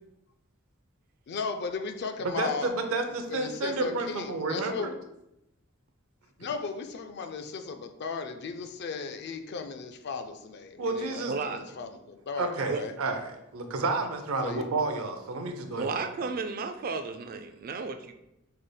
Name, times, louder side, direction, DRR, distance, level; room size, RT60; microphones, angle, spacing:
voice 1, 1.3-2.7 3.3-4.9 6.4-12.9 14.4-14.6 15.7-15.8, left 4 dB, 50° left, 7 dB, 0.4 m, -36 dB
voice 2, 2.2-4.9 10.8-11.3 12.4-16.3, right 3 dB, 90° right, 5 dB, 0.6 m, -31 dB
voice 3, 11.3-11.6 12.7-12.8 15.8-18.1, right 4 dB, 45° right, 7 dB, 0.3 m, -33 dB
5.4 x 3.3 x 2.2 m, 0.85 s
head